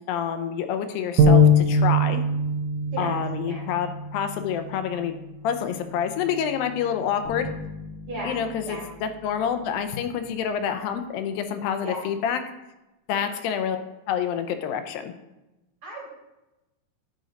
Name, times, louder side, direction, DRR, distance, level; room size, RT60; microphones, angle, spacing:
voice 1, 0.0-2.2 3.0-5.1 5.4-7.5 8.2-12.4 13.1-15.1, left 8 dB, 80° left, 8 dB, 2.4 m, -28 dB
sound 1, 1.2-7.4, left 2 dB, 85° right, 1.9 m, -23 dB
voice 2, 2.9-3.1 3.4-3.6 8.1-8.3 8.6-8.8 11.8-12.0 13.1-13.3 15.8-16.1, right 2 dB, 40° right, -5 dB, 3.0 m, -35 dB
Bass guitar, 7.2-10.3, left 2 dB, ahead, 1.6 m, -41 dB
10.0 x 3.9 x 3.9 m, 0.98 s
omnidirectional pair, 4.2 m